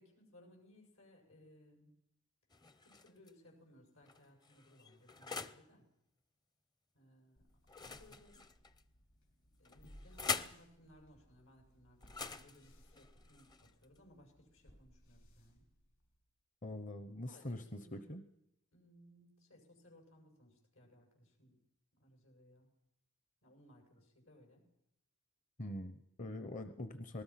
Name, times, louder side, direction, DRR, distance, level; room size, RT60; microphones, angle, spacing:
voice 1, 0.0-1.9 2.8-5.9 6.9-7.5 7.8-8.5 9.6-15.6 17.3-18.1 18.7-21.6 21.9-22.7 23.4-24.7, equal, 85° left, 2 dB, 7.4 m, -63 dB
sound 1, 2.5-3.3 4.0-5.7 7.7-8.8 9.6-10.6 12.0-14.0, left 4 dB, 20° left, 0.7 m, -44 dB
sound 2, 7.4-16.3, equal, 65° left, 6.0 m, -64 dB
voice 2, 16.6-18.2 25.6-27.2, left 1 dB, 40° left, 10 dB, 1.0 m, -44 dB
26.5 x 19.5 x 5.9 m, 0.83 s
head